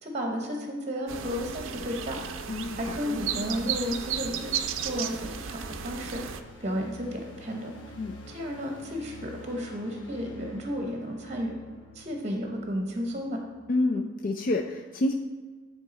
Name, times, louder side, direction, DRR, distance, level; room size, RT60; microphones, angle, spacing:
voice 1, 0.0-2.4 2.7-4.5 4.8-6.2 6.6-7.7 8.3-11.5 11.9-13.4, equal, 35° right, 2 dB, 0.8 m, -33 dB
sound 1, 1.1-6.4, right 8 dB, 85° right, 0.4 m, -34 dB
voice 2, 2.5-3.2 8.0-8.2 13.7-15.1, left 2 dB, 45° left, 3 dB, 0.4 m, -28 dB
sound 2, 3.6-13.6, left 1 dB, 70° left, 1.1 m, -49 dB
9.1 x 3.6 x 4.1 m, 1.4 s
head